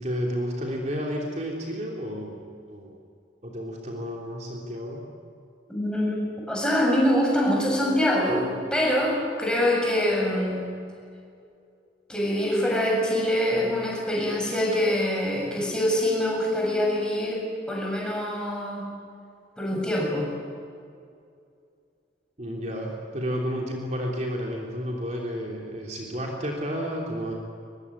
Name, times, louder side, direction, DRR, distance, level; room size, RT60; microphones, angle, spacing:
voice 1, 0.0-2.4 2.7-2.9 3.4-5.0 22.4-27.3, equal, 40° right, -1 dB, 3.3 m, -31 dB
voice 2, 5.7-10.7 12.1-18.9 19.6-20.3, left 1 dB, 5° left, -2 dB, 7.3 m, -24 dB
23.5 x 22.5 x 9.8 m, 2.4 s
head